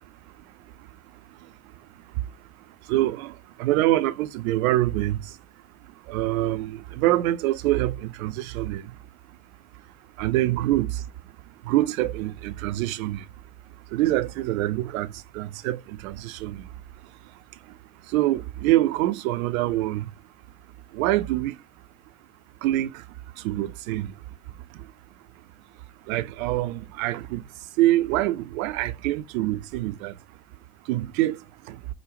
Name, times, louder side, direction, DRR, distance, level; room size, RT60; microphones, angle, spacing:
voice 1, 2.9-3.3 3.6-5.2 6.1-8.9 10.2-11.0 11.7-13.2 13.9-15.1 15.3-16.6 18.1-20.0 20.9-21.6 22.6-22.9 23.4-24.1 26.1-27.4 27.8-30.1 30.9-31.4 31.7-31.8, right 16 dB, 65° right, 0.5 m, -25 dB
4.9 x 2.2 x 3.0 m
figure-of-eight pair, 55°, 44 cm